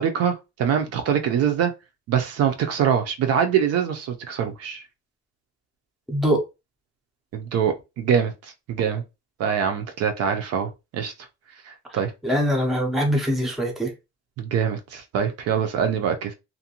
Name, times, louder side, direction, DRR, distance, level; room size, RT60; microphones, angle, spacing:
voice 1, 0.0-1.7 2.1-4.8 7.3-8.3 8.7-9.0 9.4-11.1 11.7-12.1 14.4-16.3, right 8 dB, 60° right, 0.5 m, -24 dB
voice 2, 6.1-6.4 12.2-13.9, equal, ahead, 0.5 m, -22 dB
2.6 x 2.2 x 2.8 m
cardioid pair, 155°, 29 cm